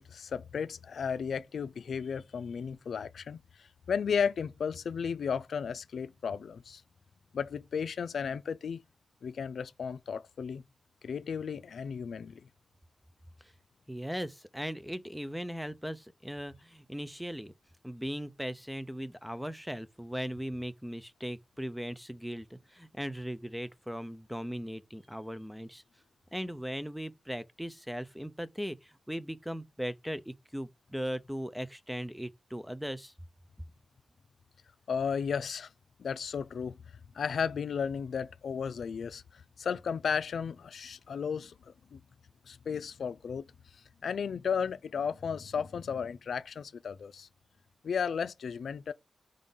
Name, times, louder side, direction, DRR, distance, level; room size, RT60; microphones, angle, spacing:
voice 1, 0.0-6.8 7.3-8.8 9.2-10.6 11.0-12.5 34.9-35.7 36.0-36.8 37.1-42.0 42.5-43.4 44.0-47.3 47.8-48.9, left 6 dB, 80° left, 0.4 m, -34 dB
voice 2, 13.9-17.5 17.8-25.8 26.3-33.1, equal, ahead, 0.5 m, -38 dB
5.1 x 3.7 x 5.5 m
wide cardioid pair, 95°, 0 cm